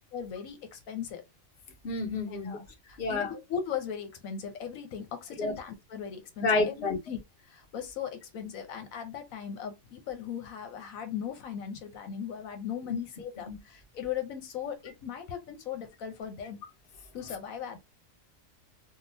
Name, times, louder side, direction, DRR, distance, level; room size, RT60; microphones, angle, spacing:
voice 1, 0.1-1.2 2.3-16.6 17.1-17.8, left 8 dB, 80° left, 1.2 m, -38 dB
voice 2, 1.8-2.6 3.0-3.3 5.4-5.5 6.4-7.0 12.9-13.0 13.5-13.6, left 3 dB, 50° left, 1.1 m, -29 dB
3.7 x 2.3 x 2.6 m
omnidirectional pair, 1.4 m